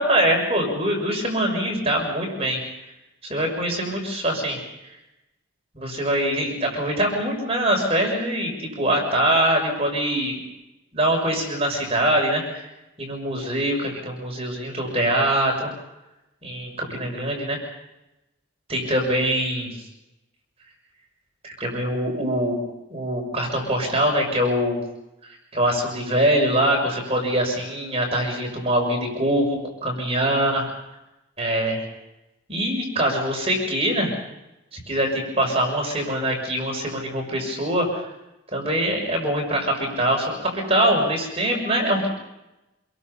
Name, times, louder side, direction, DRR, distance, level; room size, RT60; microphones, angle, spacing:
voice 1, 0.0-2.6 3.2-4.6 5.7-10.4 10.9-12.7 13.0-15.7 16.4-17.6 18.7-19.7 21.4-22.6 22.9-24.8 25.2-30.7 31.4-31.8 32.5-34.1 34.7-38.1 38.5-42.1, right 1 dB, 30° right, 1 dB, 6.5 m, -23 dB
27.5 x 23.0 x 5.7 m, 0.92 s
head